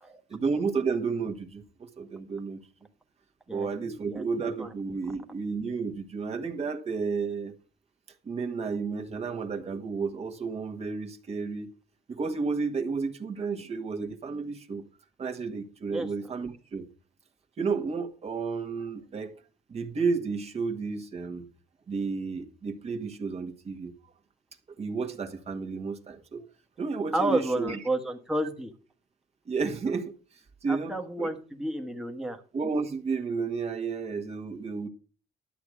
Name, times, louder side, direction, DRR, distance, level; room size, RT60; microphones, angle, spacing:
voice 1, 0.3-2.6 3.5-7.6 8.2-11.7 12.1-14.8 15.2-16.9 17.6-19.3 19.7-21.5 21.9-23.9 24.8-26.4 26.8-27.8 29.5-31.3 32.5-34.9, right 4 dB, 40° right, 1.5 m, -32 dB
voice 2, 3.5-4.2 4.6-4.7 15.9-16.1 27.1-28.7 30.7-32.4, right 1 dB, 5° right, 1.3 m, -31 dB
12.0 x 7.9 x 4.8 m
cardioid pair, 110°, 17 cm